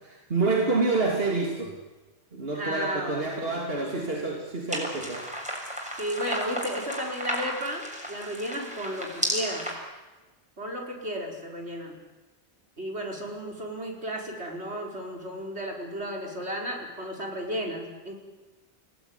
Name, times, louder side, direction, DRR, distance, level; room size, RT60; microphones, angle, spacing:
voice 1, 0.1-1.7 2.3-5.2, right 3 dB, 65° right, 0 dB, 3.2 m, -27 dB
voice 2, 2.5-3.6 5.9-9.8 10.6-12.0 12.8-18.2, equal, 80° right, 1 dB, 5.5 m, -34 dB
sound 1, 4.7-9.7, equal, 5° right, 6.8 m, -33 dB
29.5 x 18.0 x 9.9 m, 1.2 s
omnidirectional pair, 1.1 m